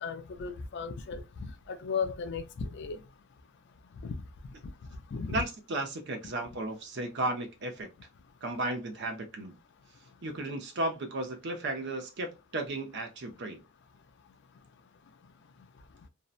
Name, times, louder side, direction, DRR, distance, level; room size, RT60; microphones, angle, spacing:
voice 1, 0.0-3.0 4.0-4.1 5.1-5.4, left 5 dB, 50° left, 0.4 m, -36 dB
voice 2, 5.3-7.9 8.4-9.5 10.2-13.6, right 2 dB, 50° right, 0.5 m, -34 dB
2.6 x 2.1 x 2.4 m
head